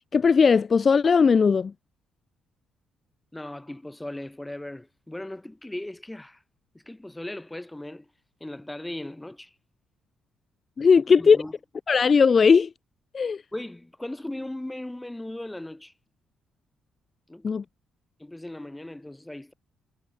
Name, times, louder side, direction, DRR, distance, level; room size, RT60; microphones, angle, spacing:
voice 1, 0.0-1.7 10.8-11.4 11.9-12.7 13.1-13.4 17.4-17.6, left 5 dB, 40° left, 0.4 m, -18 dB
voice 2, 3.3-6.4 6.7-8.1 8.4-9.5 11.2-11.5 13.5-15.9 17.3-17.5 18.2-19.5, left 1 dB, 10° left, 6.2 m, -37 dB
cardioid pair, 90°, 0 cm